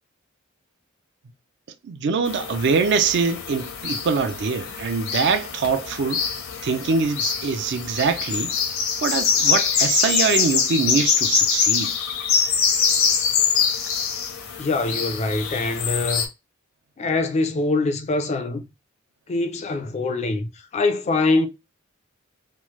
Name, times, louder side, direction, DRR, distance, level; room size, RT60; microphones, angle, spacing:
voice 1, 1.8-6.2 6.6-8.5 9.0-11.9, right 5 dB, 60° right, 0.4 m, -23 dB
sound 1, 2.3-16.3, left 6 dB, 80° left, 0.6 m, -24 dB
voice 2, 14.6-16.3 17.0-18.6 19.3-21.5, left 3 dB, 35° left, 0.3 m, -23 dB
3.1 x 2.0 x 2.9 m
head